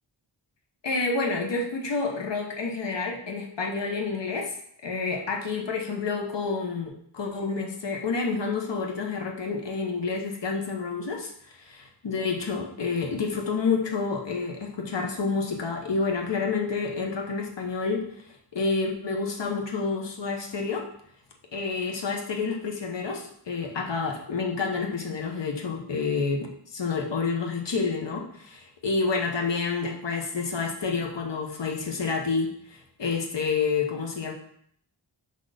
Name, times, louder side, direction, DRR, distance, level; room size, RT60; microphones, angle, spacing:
voice 1, 0.8-4.5 4.8-18.0 18.5-20.9 21.5-34.3, left 4 dB, 70° left, 1 dB, 1.1 m, -29 dB
5.3 x 4.3 x 5.0 m, 0.66 s
wide cardioid pair, 75°, 45 cm